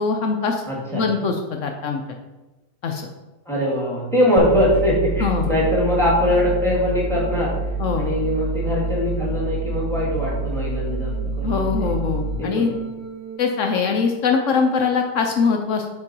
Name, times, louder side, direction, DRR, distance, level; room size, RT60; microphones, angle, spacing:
voice 1, 0.0-0.6 0.9-2.0 2.8-3.1 5.2-5.5 7.8-8.0 11.4-12.7 13.4-15.9, left 5 dB, 75° left, 4 dB, 0.7 m, -22 dB
voice 2, 0.7-1.0 3.5-7.6 8.0-11.9 12.4-12.7, left 1 dB, ahead, -4 dB, 1.8 m, -22 dB
sound 1, 4.4-13.4, right 3 dB, 90° right, 1.5 m, -27 dB
4.8 x 4.5 x 5.4 m, 1.1 s
omnidirectional pair, 2.0 m